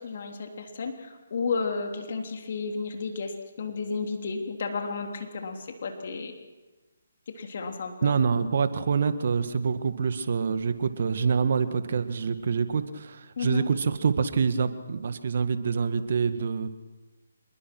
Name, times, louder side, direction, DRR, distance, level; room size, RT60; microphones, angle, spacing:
voice 1, 0.0-3.3 3.6-6.3 7.3-8.2 13.4-13.6, left 4 dB, 55° left, 4 dB, 3.2 m, -32 dB
voice 2, 8.0-16.7, right 5 dB, 55° right, 10 dB, 1.8 m, -26 dB
27.0 x 21.0 x 6.2 m, 1.2 s
figure-of-eight pair, 150°, 0 cm